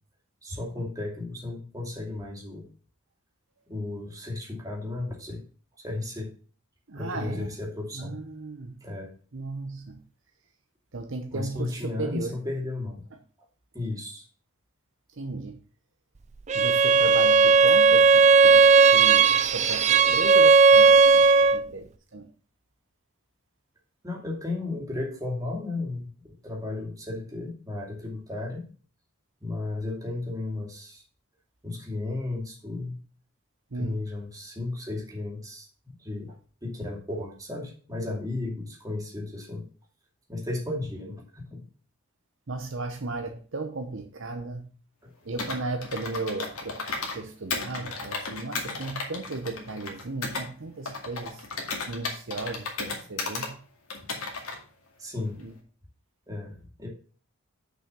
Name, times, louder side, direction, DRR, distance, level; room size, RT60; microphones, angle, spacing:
voice 1, 0.4-2.7 3.7-5.4 5.8-6.3 6.9-8.1 8.8-9.1 11.3-13.0 13.7-14.2 24.0-26.1 26.4-28.7 29.4-31.0 31.6-33.0 33.7-36.4 36.6-39.7 40.3-41.6 55.0-55.4 56.3-56.9, left 2 dB, 15° right, -1 dB, 2.4 m, -34 dB
voice 2, 6.9-7.5 7.9-8.8 9.3-10.0 10.9-12.3 15.2-15.6 16.5-22.3 33.7-34.1 42.5-44.7 45.2-46.8 47.1-51.4 51.9-53.6 55.4-55.5, right 3 dB, 60° right, 5 dB, 0.8 m, -35 dB
Bowed string instrument, 16.5-21.7, right 4 dB, 30° right, 0.4 m, -17 dB
Computer keyboard, 45.4-47.2 47.5-50.5 50.9-53.5 53.9-54.6, left 4 dB, 80° left, 2.1 m, -34 dB
6.3 x 5.6 x 6.8 m, 0.40 s
head